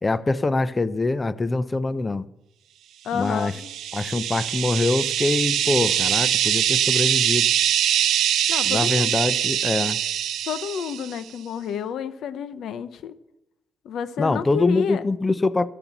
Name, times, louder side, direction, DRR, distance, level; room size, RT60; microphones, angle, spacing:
voice 1, 0.0-2.3 3.1-3.5 3.9-7.5 8.6-10.0 14.2-15.7, left 3 dB, 25° left, 16 dB, 0.6 m, -24 dB
voice 2, 3.0-3.7 8.5-9.1 10.5-13.1 13.8-15.0, left 7 dB, 70° left, 13 dB, 0.8 m, -30 dB
sound 1, 3.4-11.2, right 10 dB, 80° right, 0.7 m, -23 dB
11.5 x 6.9 x 7.1 m, 0.88 s
cardioid pair, 90°, 0 cm